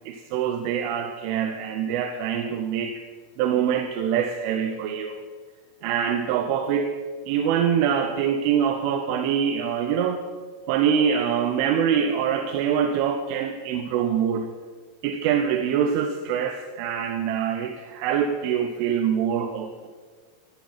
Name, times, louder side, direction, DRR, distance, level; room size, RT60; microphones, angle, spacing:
voice 1, 0.1-3.0 3.4-5.3 5.8-10.3 10.7-14.5 15.0-19.9, right 8 dB, 90° right, 6 dB, 3.3 m, -24 dB
18.0 x 10.5 x 5.8 m, 1.5 s
omnidirectional pair, 5.5 m